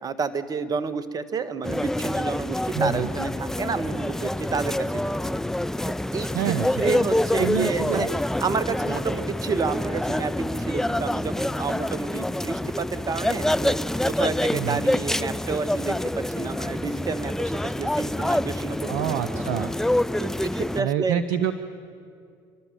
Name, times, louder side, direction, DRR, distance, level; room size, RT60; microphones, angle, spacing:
voice 1, 0.0-5.1 6.1-8.1 8.4-13.8 14.1-19.1 19.3-19.7 20.2-21.2, right 5 dB, 35° right, 12 dB, 1.4 m, -30 dB
sound 1, 1.6-20.8, left 1 dB, 5° left, 0.5 m, -26 dB
voice 2, 2.7-3.1 6.3-7.0 7.4-8.1 14.5-14.8 18.9-19.7 20.8-21.5, right 10 dB, 70° right, 12 dB, 0.7 m, -27 dB
28.5 x 12.0 x 9.0 m, 2.4 s
hypercardioid pair, 70°, 11 cm